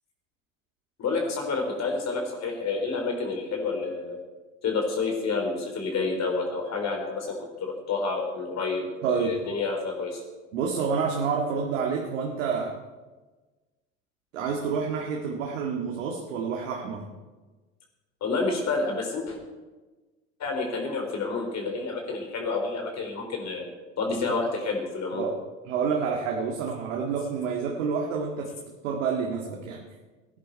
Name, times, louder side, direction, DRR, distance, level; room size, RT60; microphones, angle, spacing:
voice 1, 1.0-4.2 4.6-10.2 18.2-19.4 20.4-23.7 24.0-25.2, left 4 dB, 45° left, 1 dB, 3.8 m, -29 dB
voice 2, 9.0-9.4 10.5-12.7 14.3-17.0 25.1-25.3 25.7-28.5 28.8-29.8, right 5 dB, 70° right, 0 dB, 2.0 m, -28 dB
18.5 x 11.0 x 4.6 m, 1.2 s
figure-of-eight pair, 70°, 39 cm